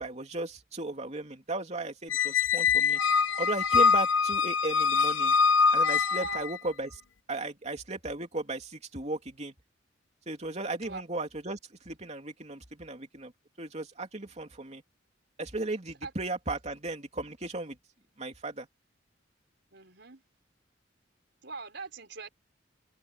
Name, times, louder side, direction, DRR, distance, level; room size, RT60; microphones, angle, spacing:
voice 1, 0.0-3.0 3.4-5.4 5.7-7.0 7.3-9.5 10.3-13.3 13.6-14.8 15.4-17.8 18.2-18.7, right 2 dB, 35° right, 3.0 m, -36 dB
Squeak, 2.1-6.6, left 5 dB, 90° left, 0.9 m, -24 dB
voice 2, 6.2-6.5 10.8-11.0 16.0-16.1 19.7-20.2 21.4-22.3, right 4 dB, 60° right, 5.6 m, -41 dB
open air
head